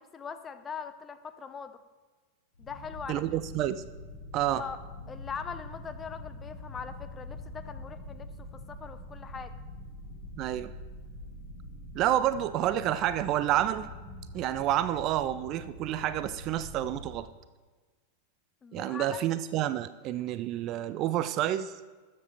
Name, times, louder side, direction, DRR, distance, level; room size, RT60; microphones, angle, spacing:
voice 1, 0.0-1.8 2.6-3.2 4.6-4.8 5.1-9.5 18.6-19.2, left 6 dB, 20° left, 10 dB, 0.7 m, -41 dB
sound 1, 2.5-17.2, left 1 dB, 75° left, 2.6 m, -44 dB
voice 2, 3.1-3.8 4.3-4.6 10.4-10.7 11.9-13.9 14.3-17.3 18.7-21.7, right 12 dB, 35° right, 13 dB, 0.4 m, -29 dB
13.0 x 7.5 x 4.1 m, 1.3 s
figure-of-eight pair, 90°, 0 cm